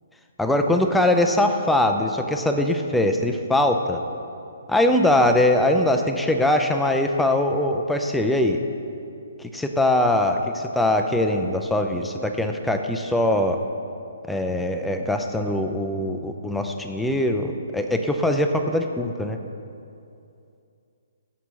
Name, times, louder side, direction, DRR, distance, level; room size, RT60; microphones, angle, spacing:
voice 1, 0.4-4.0 4.7-8.6 9.4-13.6 14.3-19.4, left 1 dB, 5° left, 4 dB, 0.4 m, -22 dB
6.1 x 4.4 x 5.5 m, 2.6 s
hypercardioid pair, 135°, 0 cm